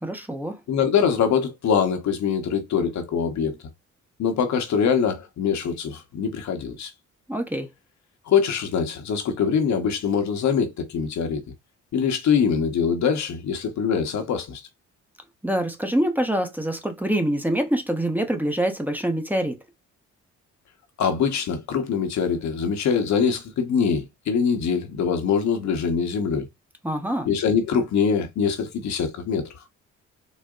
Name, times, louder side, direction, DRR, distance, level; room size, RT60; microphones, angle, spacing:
voice 1, 0.0-0.6 7.3-7.7 15.4-19.6 26.8-27.3, right 1 dB, 5° right, 0.9 m, -25 dB
voice 2, 0.7-3.6 4.2-6.9 8.3-11.4 11.9-14.6 21.0-26.5 27.3-29.5, left 6 dB, 65° left, 1.1 m, -23 dB
4.1 x 2.2 x 3.7 m
cardioid pair, 90°, 30 cm